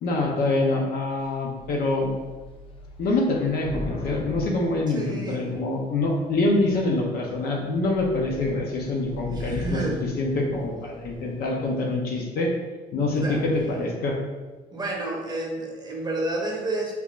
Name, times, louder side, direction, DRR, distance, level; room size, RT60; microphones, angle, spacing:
voice 1, 0.0-2.1 3.0-12.5 12.9-14.2, left 2 dB, 65° left, 0 dB, 0.7 m, -25 dB
Thunder / Rain, 1.2-1.3 1.6-5.7 6.4-6.9 7.3-7.5 7.7-11.5, left 2 dB, 30° left, 0.5 m, -39 dB
voice 2, 4.9-5.4 9.3-10.0 13.2-13.4 14.7-16.9, right 2 dB, 25° right, -1 dB, 0.7 m, -30 dB
3.4 x 2.5 x 3.0 m, 1.3 s
cardioid pair, 110°, 17 cm